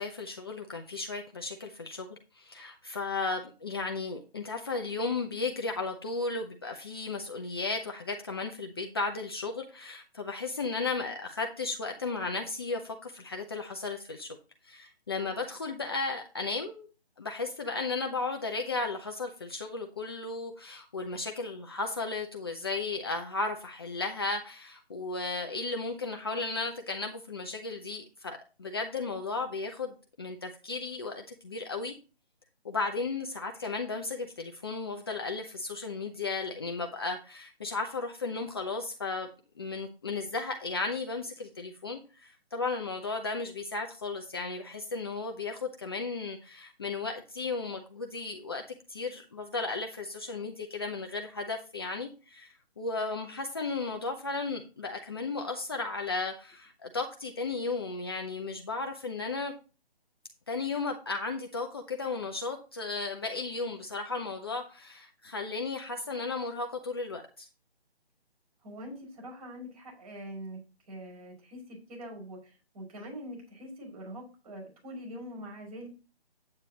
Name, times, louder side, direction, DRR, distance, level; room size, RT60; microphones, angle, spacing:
voice 1, 0.0-14.4 14.6-16.9 17.2-31.9 32.6-39.3 39.6-59.5 60.5-67.5, left 3 dB, 25° left, 3 dB, 0.7 m, -35 dB
voice 2, 68.6-70.6 70.9-75.9, equal, 35° right, 0 dB, 5.9 m, -43 dB
8.9 x 8.9 x 2.9 m, 0.33 s
figure-of-eight pair, 150°, 32 cm